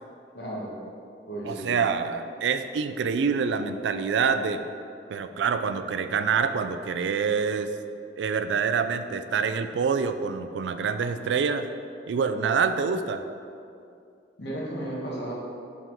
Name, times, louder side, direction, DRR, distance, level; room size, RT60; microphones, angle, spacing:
voice 1, 0.3-0.7 1.3-1.7 14.4-15.3, right 1 dB, 65° left, -4 dB, 1.3 m, -34 dB
voice 2, 1.4-4.6 5.1-7.7 8.2-11.7 12.1-13.2, right 6 dB, 80° right, 10 dB, 0.3 m, -26 dB
5.4 x 3.6 x 5.3 m, 2.5 s
head